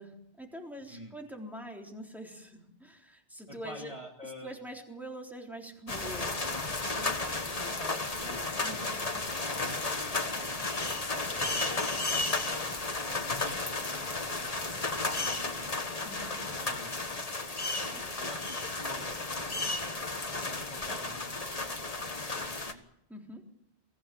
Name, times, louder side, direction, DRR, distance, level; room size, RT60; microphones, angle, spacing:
voice 1, 0.0-3.9 4.4-6.4 8.6-9.3 16.0-16.5 17.9-18.4 23.1-23.4, equal, ahead, 0 dB, 3.7 m, -45 dB
voice 2, 0.9-1.2 3.5-4.6 6.9-9.0 9.4-15.8 16.5-17.6 18.2-19.3 20.5-22.8, equal, 25° right, 0 dB, 2.3 m, -50 dB
sound 1, 5.9-22.7, left 3 dB, 35° left, 1.6 m, -33 dB
23.5 x 16.5 x 8.7 m, 0.77 s
omnidirectional pair, 1.2 m